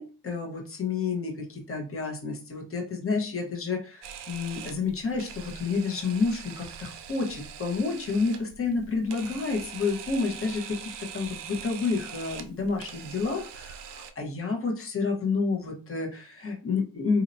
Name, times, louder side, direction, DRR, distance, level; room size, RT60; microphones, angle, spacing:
voice 1, 0.0-17.2, left 4 dB, 30° left, 1 dB, 1.1 m, -30 dB
Camera, 4.0-14.1, right 8 dB, 75° right, 0.7 m, -43 dB
4.3 x 2.8 x 2.7 m, 0.34 s
cardioid pair, 100°, 42 cm